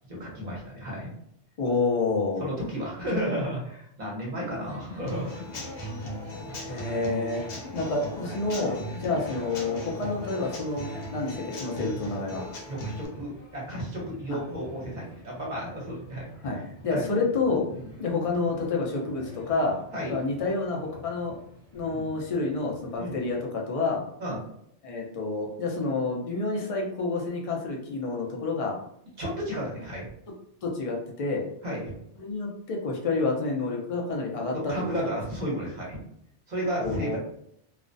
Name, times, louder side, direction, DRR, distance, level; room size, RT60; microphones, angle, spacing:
voice 1, 0.1-1.1 2.4-5.4 6.3-6.5 9.0-9.1 12.7-16.3 16.5-16.6 16.9-17.0 17.7-17.9 19.9-20.2 21.8-22.0 23.0-23.2 24.2-24.4 29.2-30.0 31.6-31.8 34.5-36.0 36.5-37.2, equal, 40° right, -4 dB, 0.9 m, -33 dB
voice 2, 1.6-2.5 6.6-7.4 7.7-12.4 14.3-14.4 16.4-17.7 18.0-19.8 20.1-21.4 21.7-24.0 24.8-28.8 30.6-31.4 32.2-35.1 36.7-37.2, left 3 dB, 50° left, -1 dB, 0.4 m, -29 dB
sound 1, 4.5-23.3, right 1 dB, 15° left, 0.8 m, -47 dB
Human voice / Acoustic guitar / Drum, 5.1-13.1, left 1 dB, 85° left, 1.0 m, -38 dB
2.4 x 2.1 x 2.5 m, 0.71 s
omnidirectional pair, 1.2 m